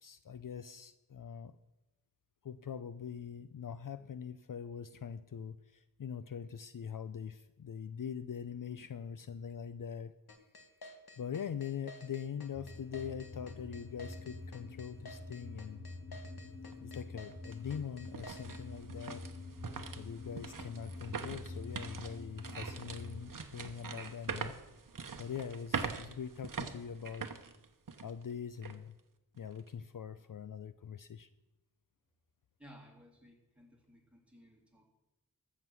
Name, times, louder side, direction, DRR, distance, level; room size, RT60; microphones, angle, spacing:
voice 1, 0.0-1.6 2.4-10.1 10.8-10.9 11.2-15.9 16.8-19.2 20.0-24.5 25.2-27.3 28.0-29.0 29.4-31.3, left 7 dB, 60° left, 13 dB, 0.5 m, -43 dB
sound 1, 10.3-18.6, left 2 dB, 80° left, 1.6 m, -52 dB
sound 2, 12.5-23.3, left 2 dB, 40° left, 1.5 m, -47 dB
sound 3, 16.7-16.8 17.3-28.2 28.6-28.8 29.3-29.7, right 5 dB, 60° right, 1.0 m, -43 dB
voice 2, 32.6-34.9, equal, 5° right, -1 dB, 3.2 m, -58 dB
13.5 x 7.4 x 6.2 m, 0.96 s
wide cardioid pair, 65°, 36 cm